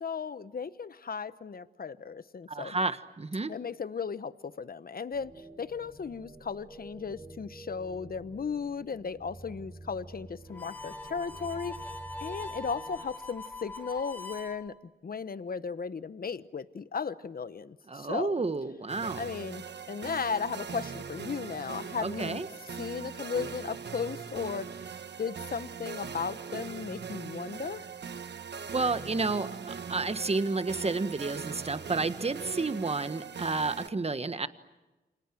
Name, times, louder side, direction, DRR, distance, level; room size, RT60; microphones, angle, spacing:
voice 1, 0.0-2.7 3.5-5.3 5.6-11.7 12.2-14.7 15.0-18.3 19.2-22.4 22.8-24.7 25.2-27.9, left 5 dB, 55° left, 14 dB, 1.0 m, -36 dB
voice 2, 2.5-3.5 17.9-19.3 22.0-22.5 28.7-34.5, right 3 dB, 35° right, 11 dB, 1.4 m, -31 dB
sound 1, 5.1-12.9, right 2 dB, 10° right, 7.6 m, -49 dB
Harmonica, 10.5-14.6, left 2 dB, 10° left, 2.4 m, -42 dB
sound 2, 18.9-33.9, right 6 dB, 75° right, 1.2 m, -41 dB
29.0 x 26.0 x 7.7 m, 1.1 s
cardioid pair, 70°, 18 cm